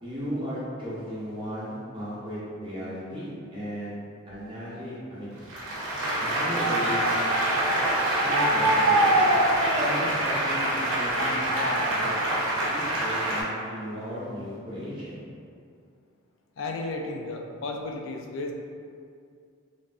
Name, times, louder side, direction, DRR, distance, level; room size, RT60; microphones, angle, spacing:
voice 1, 0.0-3.9 4.3-5.3 6.2-7.2 8.2-9.1 9.7-12.2 12.7-15.2, equal, 25° right, -10 dB, 0.8 m, -35 dB
Applause, 5.5-13.4, right 1 dB, 80° right, 0.7 m, -24 dB
voice 2, 16.6-18.5, left 2 dB, 70° left, 3 dB, 0.3 m, -33 dB
3.3 x 2.5 x 2.4 m, 2.3 s
head